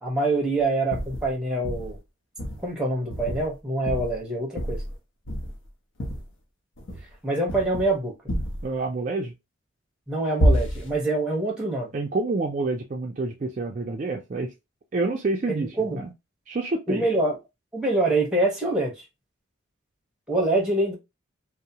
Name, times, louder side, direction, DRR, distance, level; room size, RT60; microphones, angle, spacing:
voice 1, 0.0-2.0 2.6-4.8 7.2-8.1 10.1-11.9 15.5-16.0 16.9-17.4 17.7-19.0 20.3-21.0, right 2 dB, 5° right, 0.8 m, -25 dB
sound 1, 0.9-1.3 1.6-2.0 2.4-2.7 3.1-3.5 3.9-4.2 4.6-5.0 5.3-5.7 6.0-6.2 6.8-7.1 7.5-7.9 8.3-8.7 10.4-11.0, equal, 80° left, 0.7 m, -27 dB
voice 2, 8.6-9.3 11.9-14.5 14.9-16.1 16.5-17.1, right 3 dB, 40° right, 0.3 m, -28 dB
2.7 x 2.0 x 2.7 m
head